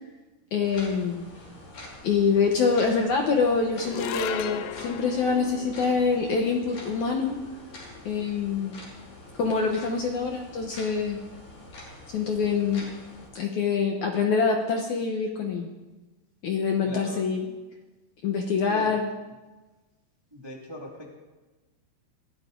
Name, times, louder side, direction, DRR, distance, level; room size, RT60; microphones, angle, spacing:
voice 1, 0.5-1.3 2.0-7.4 8.1-8.8 9.4-11.2 12.1-12.8 13.3-15.7 16.4-17.4 18.2-19.0, left 5 dB, 70° left, 2 dB, 1.9 m, -25 dB
sound 1, 0.6-13.3, left 1 dB, 50° left, 6.2 m, -46 dB
sound 2, 3.8-10.3, left 11 dB, 85° left, 2.9 m, -39 dB
voice 2, 16.8-17.3 18.7-19.0 20.3-21.2, left 1 dB, 25° right, -1 dB, 0.5 m, -40 dB
22.0 x 17.0 x 3.9 m, 1.2 s
omnidirectional pair, 5.0 m